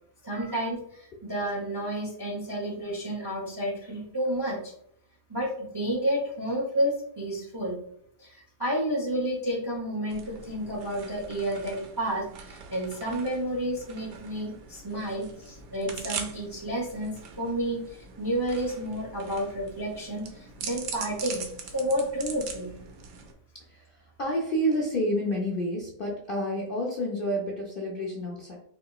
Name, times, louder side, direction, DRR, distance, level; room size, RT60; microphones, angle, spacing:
voice 1, 0.2-4.7 5.3-7.8 8.2-21.4 21.7-22.7, equal, 25° right, -4 dB, 0.5 m, -31 dB
sound 1, 10.1-23.3, right 5 dB, 90° right, 1.3 m, -42 dB
voice 2, 24.2-28.6, equal, 65° left, -3 dB, 0.5 m, -29 dB
4.7 x 2.9 x 2.3 m, 0.72 s
omnidirectional pair, 1.8 m